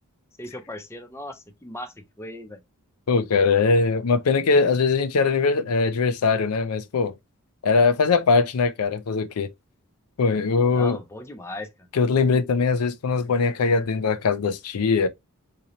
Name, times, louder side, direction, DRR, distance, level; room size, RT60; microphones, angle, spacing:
voice 1, 0.4-2.6 10.6-11.7, left 1 dB, 10° left, 0.5 m, -37 dB
voice 2, 3.1-7.1 7.6-9.5 10.2-11.0 11.9-15.1, left 4 dB, 85° left, 0.5 m, -21 dB
3.8 x 2.8 x 3.0 m
head